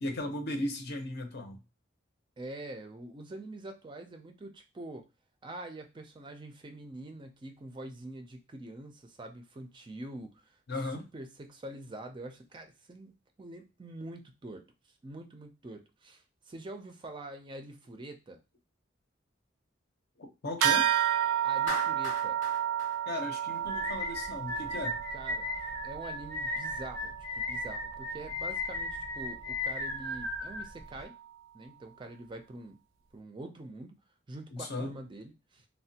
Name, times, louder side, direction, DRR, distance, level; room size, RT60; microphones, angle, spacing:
voice 1, 0.0-1.6 10.7-11.0 20.2-20.9 23.1-25.0 34.5-34.9, left 2 dB, 55° left, 0.6 m, -36 dB
voice 2, 2.4-5.1 5.4-13.1 13.4-14.7 15.0-18.4 21.4-22.4 25.1-25.5 25.8-31.1 31.5-32.8 33.1-34.0 34.3-35.7, right 1 dB, 25° right, 0.4 m, -45 dB
sound 1, 20.6-30.4, right 10 dB, 90° right, 0.4 m, -33 dB
Clapping, 21.7-24.0, left 3 dB, 85° left, 0.9 m, -40 dB
sound 2, 23.7-31.0, left 3 dB, 15° left, 0.6 m, -36 dB
3.2 x 2.2 x 2.7 m
head